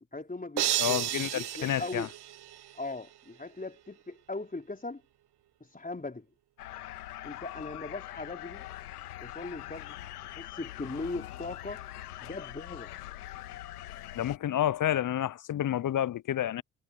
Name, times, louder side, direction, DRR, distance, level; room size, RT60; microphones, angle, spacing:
voice 1, 0.1-2.1 2.8-5.0 5.6-6.3 7.2-8.6 9.2-10.0 10.3-11.9 12.2-12.9, left 2 dB, 20° left, 4.7 m, -39 dB
sound 1, 0.6-2.9, right 12 dB, 60° right, 1.9 m, -32 dB
voice 2, 0.8-2.1 14.1-16.6, left 11 dB, 45° left, 0.8 m, -29 dB
sound 2, 6.6-14.4, left 14 dB, 85° left, 1.9 m, -43 dB
hypercardioid pair, 45°, 45 cm